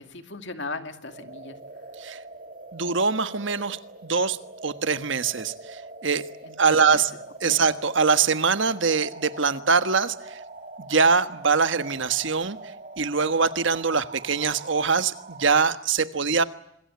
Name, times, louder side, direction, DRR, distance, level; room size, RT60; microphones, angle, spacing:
voice 1, 0.0-1.6 6.4-7.0 7.4-7.6, left 3 dB, 60° left, 8 dB, 2.5 m, -37 dB
sound 1, 1.1-15.8, right 2 dB, 40° right, 2.9 m, -43 dB
voice 2, 2.7-4.4 4.6-6.2 6.6-7.1 7.4-10.4 10.8-16.4, right 5 dB, 65° right, 11 dB, 1.4 m, -23 dB
26.5 x 21.5 x 9.4 m, 0.77 s
head